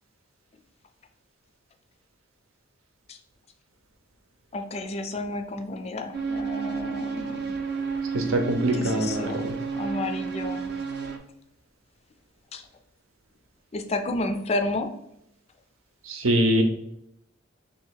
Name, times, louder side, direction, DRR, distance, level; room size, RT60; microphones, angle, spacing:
voice 1, 4.5-7.4 8.7-10.7 12.5-12.6 13.7-14.9, left 2 dB, 30° left, 7 dB, 0.4 m, -31 dB
sound 1, 6.1-11.2, right 5 dB, 50° right, 0.5 m, -31 dB
voice 2, 8.1-9.6 16.0-16.6, right 1 dB, 90° right, 5 dB, 0.8 m, -24 dB
3.5 x 2.8 x 4.5 m, 0.78 s
head